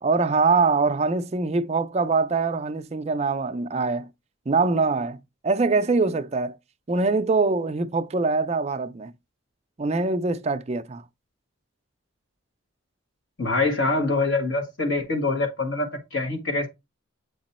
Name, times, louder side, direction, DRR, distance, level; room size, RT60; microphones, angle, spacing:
voice 1, 0.0-4.1 4.5-5.2 5.4-6.6 6.9-9.1 9.8-11.0, right 4 dB, 30° right, 0.4 m, -23 dB
voice 2, 13.4-16.7, left 3 dB, 60° left, 1.5 m, -25 dB
8.0 x 2.9 x 4.1 m
head